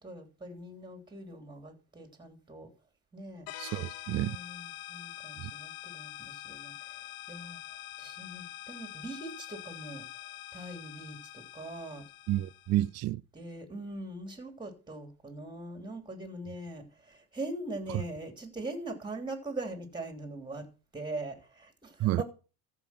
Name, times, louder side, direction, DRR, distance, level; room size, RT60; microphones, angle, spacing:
voice 1, 0.0-2.7 3.1-3.5 4.1-7.0 7.3-7.6 8.0-10.0 10.5-12.0 12.7-12.8 13.3-20.7 20.9-22.2, right 2 dB, 10° right, 3.1 m, -42 dB
sound 1, 3.5-12.9, left 15 dB, 60° left, 1.0 m, -45 dB
voice 2, 3.6-4.4 5.4-5.5 12.3-13.2 22.0-22.2, right 15 dB, 40° right, 0.4 m, -30 dB
14.0 x 5.6 x 5.9 m
supercardioid pair, 110°, 40 cm